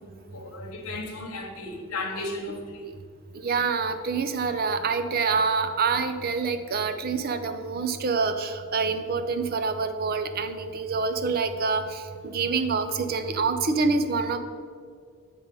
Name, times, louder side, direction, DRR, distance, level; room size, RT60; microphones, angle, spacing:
voice 1, 0.0-2.9, left 2 dB, 75° left, 1.1 m, -35 dB
voice 2, 3.3-14.4, right 4 dB, 45° right, 0.5 m, -26 dB
8.8 x 3.7 x 5.4 m
head